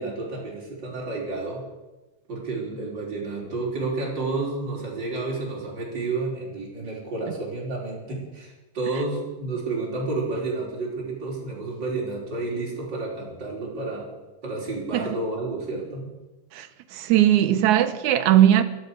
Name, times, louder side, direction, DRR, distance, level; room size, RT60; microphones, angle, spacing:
voice 1, 0.0-1.6 2.3-14.1 14.4-16.1, right 3 dB, 30° right, 5.3 m, -30 dB
voice 2, 16.9-18.6, right 12 dB, 70° right, 2.2 m, -18 dB
17.0 x 12.5 x 6.7 m
omnidirectional pair, 3.7 m